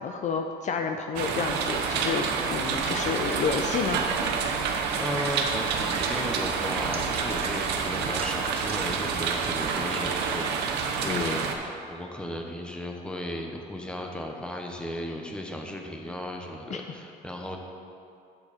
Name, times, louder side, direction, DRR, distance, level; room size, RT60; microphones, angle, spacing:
voice 1, 0.0-2.2 2.5-4.0 11.1-11.4 16.7-16.8, left 6 dB, 45° left, 5 dB, 0.5 m, -30 dB
sound 1, 1.2-11.6, right 6 dB, 85° right, 0.8 m, -28 dB
sound 2, 3.4-10.6, right 3 dB, 35° right, 1.0 m, -40 dB
voice 2, 4.9-17.6, left 1 dB, 5° left, 2 dB, 0.9 m, -35 dB
7.8 x 7.0 x 4.2 m, 2.5 s
cardioid pair, 110°, 17 cm